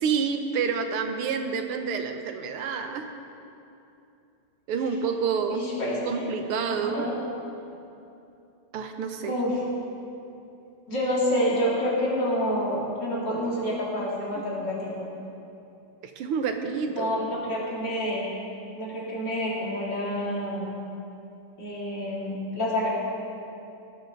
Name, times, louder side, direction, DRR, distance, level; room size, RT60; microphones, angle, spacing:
voice 1, 0.0-3.1 4.7-5.7 6.1-7.1 8.7-9.3 14.4-14.5 16.2-17.2, right 6 dB, 85° right, 6 dB, 1.9 m, -28 dB
voice 2, 5.5-6.3 6.7-7.2 9.2-9.6 10.9-15.1 17.0-18.3 18.8-20.7 21.6-22.9, equal, 50° left, -6 dB, 3.7 m, -28 dB
18.5 x 12.5 x 4.0 m, 2.8 s
omnidirectional pair, 2.4 m